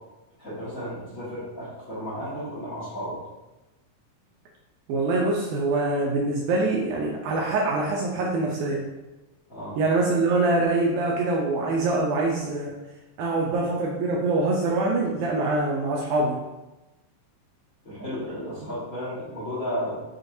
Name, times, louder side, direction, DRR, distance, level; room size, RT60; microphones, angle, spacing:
voice 1, 0.4-3.2 9.5-9.8 17.8-20.0, equal, 70° left, -12 dB, 0.8 m, -33 dB
voice 2, 4.9-8.8 9.8-12.7 13.2-16.4, right 2 dB, 80° right, -2 dB, 1.8 m, -24 dB
6.4 x 2.3 x 2.6 m, 1.0 s
omnidirectional pair, 3.9 m